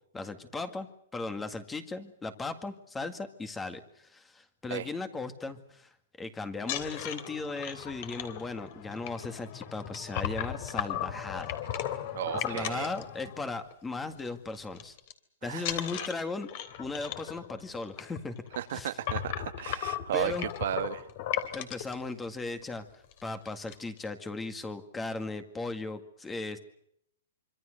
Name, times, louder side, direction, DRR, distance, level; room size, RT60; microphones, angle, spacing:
voice 1, 0.1-12.0 12.3-15.0 15.4-16.5 16.8-18.4 18.7-18.9 20.1-20.5 21.5-22.9 23.2-26.6, left 3 dB, 10° left, 2.0 m, -37 dB
sound 1, 6.6-13.7 14.0-14.3 14.5-15.1 15.6-21.9 22.6-22.7 23.0-23.2 23.5-24.0, left 11 dB, 40° left, 3.2 m, -36 dB
voice 2, 12.1-12.9 15.4-15.9 18.6-21.0, right 11 dB, 55° right, 1.4 m, -34 dB
26.0 x 25.5 x 6.6 m
hypercardioid pair, 165°, 0 cm